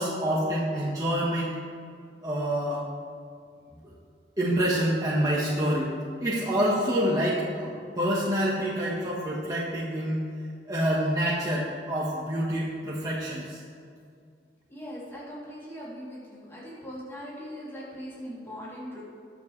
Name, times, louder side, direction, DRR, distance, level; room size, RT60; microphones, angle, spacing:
voice 1, 0.0-1.5 2.2-2.8 4.4-5.9 6.2-10.2 10.7-13.6, equal, 20° right, -7 dB, 1.4 m, -27 dB
voice 2, 14.7-19.0, equal, 15° left, -8 dB, 3.1 m, -40 dB
20.5 x 7.2 x 3.3 m, 2.2 s
head